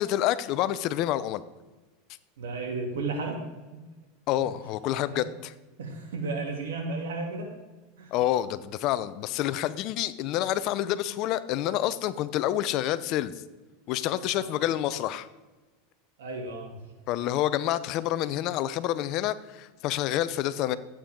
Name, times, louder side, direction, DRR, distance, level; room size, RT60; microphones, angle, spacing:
voice 1, 0.0-1.4 4.3-5.5 8.1-13.4 13.9-15.3 17.1-20.8, left 13 dB, 50° left, 15 dB, 0.6 m, -28 dB
voice 2, 2.4-3.4 5.1-5.3 5.8-7.5 8.0-8.1 14.3-14.6 16.2-16.7, right 3 dB, 85° right, 1 dB, 2.8 m, -33 dB
13.0 x 8.8 x 3.8 m, 1.2 s
supercardioid pair, 120°, 0 cm